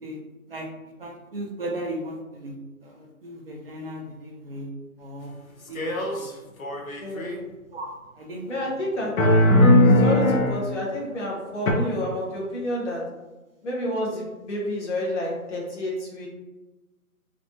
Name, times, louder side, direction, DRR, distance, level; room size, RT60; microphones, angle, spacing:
voice 1, 1.0-2.5 2.8-4.7 5.0-5.3 5.7-6.3 7.7-7.9 8.2-8.6 9.0-9.1 9.7-9.8, right 1 dB, 40° right, 0 dB, 0.6 m, -36 dB
sound 1, 5.8-6.3 6.6-7.4 9.2-10.6 11.7-11.8, left 1 dB, 65° left, 0.7 m, -18 dB
voice 2, 7.0-7.4 8.5-9.1 10.0-13.0 13.6-16.3, left 1 dB, 50° left, -3 dB, 1.2 m, -29 dB
3.3 x 2.5 x 2.6 m, 1.1 s
figure-of-eight pair, 150°, 44 cm